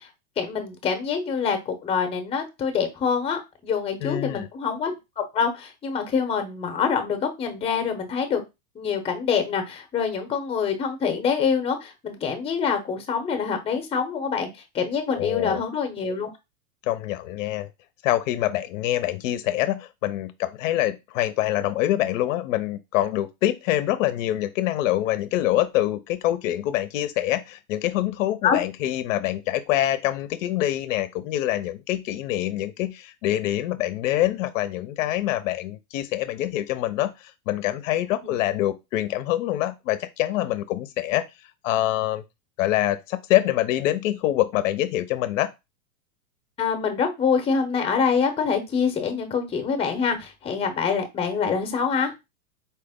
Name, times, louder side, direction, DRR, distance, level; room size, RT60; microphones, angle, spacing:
voice 1, 0.4-8.4 8.7-14.5 14.7-16.3 28.4-28.6 38.2-38.4 46.6-52.1, left 6 dB, 15° left, 0.6 m, -25 dB
voice 2, 4.0-4.5 15.2-15.6 16.8-17.7 18.0-41.3 41.6-42.2 42.6-45.5, left 14 dB, 65° left, 0.5 m, -25 dB
4.2 x 2.0 x 3.4 m
supercardioid pair, 130°, 42 cm